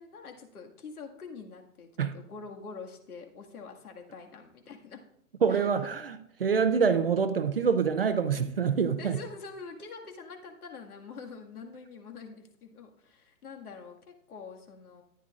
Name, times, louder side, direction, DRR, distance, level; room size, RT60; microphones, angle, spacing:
voice 1, 0.0-5.0 5.5-5.7 9.0-15.0, left 4 dB, 75° left, 1.9 m, -45 dB
voice 2, 5.4-9.2, right 6 dB, 40° right, 0.5 m, -26 dB
13.5 x 10.0 x 2.4 m
hypercardioid pair, 170°, 45 cm